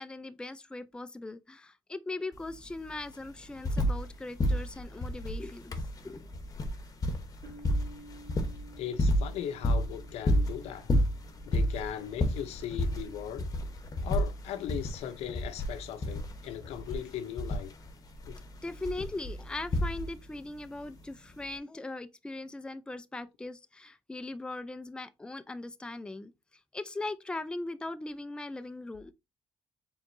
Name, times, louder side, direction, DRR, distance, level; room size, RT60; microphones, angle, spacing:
voice 1, 0.0-5.7 6.0-6.3 18.6-26.3 26.7-29.1, left 2 dB, 10° left, 0.4 m, -39 dB
sound 1, 2.3-2.4 2.7-4.1 4.4-20.4 21.4-21.5, equal, 35° left, 0.9 m, -31 dB
Piano, 7.4-12.8, right 1 dB, 70° right, 1.0 m, -54 dB
voice 2, 8.8-10.9 11.4-13.5 14.0-17.7 18.3-18.4, left 10 dB, 90° left, 0.7 m, -38 dB
4.4 x 3.7 x 2.6 m
cardioid pair, 100°, 10 cm